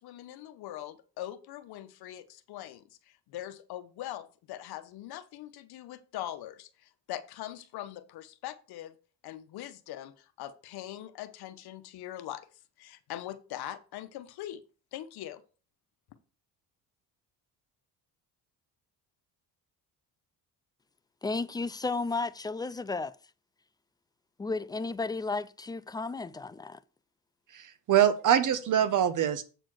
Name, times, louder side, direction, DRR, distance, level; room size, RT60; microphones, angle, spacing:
voice 1, 0.0-2.8 3.3-8.9 9.2-12.5 12.8-14.6 14.9-15.4, left 13 dB, 75° left, 1.1 m, -42 dB
voice 2, 21.2-23.2 24.4-26.8, left 3 dB, 10° left, 0.3 m, -33 dB
voice 3, 27.5-29.4, right 10 dB, 50° right, 1.0 m, -24 dB
8.0 x 4.3 x 6.2 m
cardioid pair, 105°, 39 cm